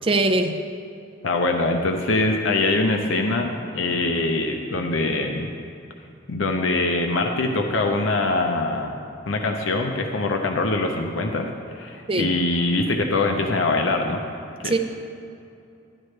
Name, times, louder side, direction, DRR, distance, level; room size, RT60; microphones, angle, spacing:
voice 1, 0.0-0.6 12.1-12.3 14.6-14.8, right 2 dB, 25° right, 5 dB, 0.5 m, -21 dB
voice 2, 1.2-5.5 6.3-8.9 9.3-14.2 14.6-14.8, left 2 dB, 75° left, 3 dB, 0.7 m, -23 dB
11.5 x 11.0 x 3.3 m, 2.6 s
head